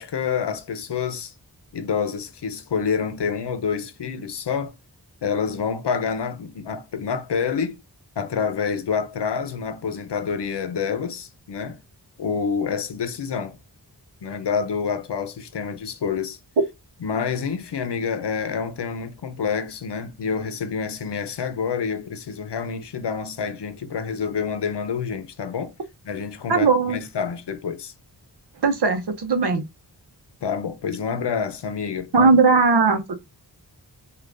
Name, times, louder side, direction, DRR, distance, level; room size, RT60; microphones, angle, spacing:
voice 1, 0.0-1.3 1.7-4.8 5.2-7.8 8.2-11.8 12.2-13.6 14.2-16.4 17.0-25.7 26.0-27.9 30.4-32.3, left 6 dB, 80° left, 0.7 m, -27 dB
voice 2, 26.5-27.0 28.6-29.7 32.1-33.2, right 4 dB, 75° right, 0.8 m, -18 dB
6.5 x 2.5 x 2.5 m
wide cardioid pair, 75°, 41 cm